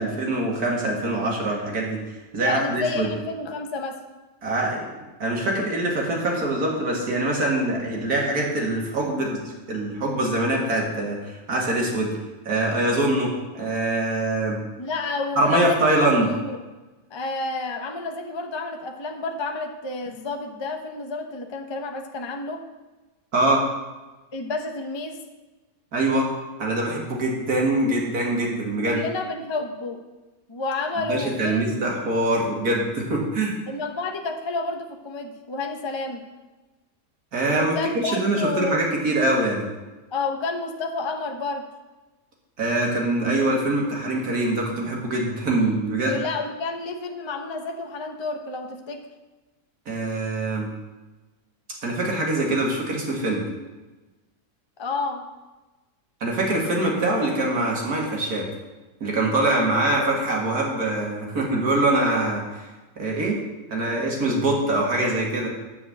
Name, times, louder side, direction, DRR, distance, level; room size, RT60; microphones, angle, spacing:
voice 1, 0.0-3.1 4.4-4.9 5.2-9.4 9.7-12.2 12.4-14.6 15.4-16.3 23.3-23.6 25.9-26.3 26.6-29.0 31.1-33.6 37.3-39.6 42.6-46.2 49.9-50.7 51.8-53.4 56.2-58.5 59.0-62.7 63.0-63.4 63.7-65.5, right 2 dB, 70° right, -1 dB, 2.5 m, -24 dB
voice 2, 2.4-4.0 14.8-15.9 16.3-16.6 17.1-22.6 24.3-25.2 28.9-30.0 30.5-31.9 33.7-36.2 37.5-38.8 40.1-41.7 46.0-49.0 54.8-55.3, left 3 dB, 25° left, 4 dB, 0.6 m, -30 dB
9.9 x 4.7 x 7.9 m, 1.2 s
omnidirectional pair, 1.7 m